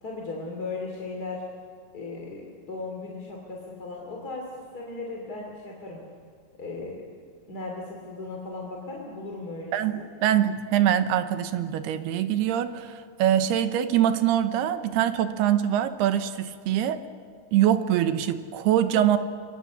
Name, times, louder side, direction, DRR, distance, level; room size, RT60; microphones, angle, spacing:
voice 1, 0.0-1.4 1.9-4.5 4.7-6.0 6.6-7.1 7.5-10.0, left 3 dB, 25° left, -1 dB, 2.7 m, -36 dB
voice 2, 9.7-17.0 17.5-19.2, right 11 dB, 85° right, 10 dB, 3.1 m, -24 dB
28.0 x 23.0 x 7.3 m, 2.2 s
omnidirectional pair, 4.6 m